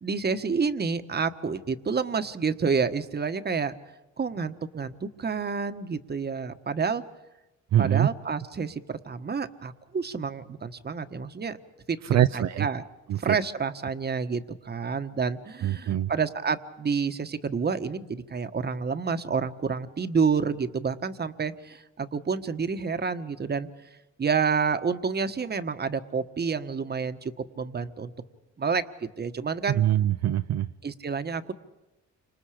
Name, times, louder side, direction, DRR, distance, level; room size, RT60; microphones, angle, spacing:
voice 1, 0.0-3.7 4.2-7.0 7.8-11.6 11.9-12.0 12.3-12.8 13.2-23.7 24.2-28.1 28.6-28.8 29.2-29.8 30.8-31.5, right 5 dB, 35° right, 9 dB, 1.5 m, -29 dB
voice 2, 7.7-8.1 12.0-12.7 13.1-13.4 15.6-16.1 29.7-30.7, right 12 dB, 60° right, 8 dB, 0.8 m, -23 dB
29.5 x 26.0 x 5.1 m, 1.0 s
cardioid pair, 90°, 30 cm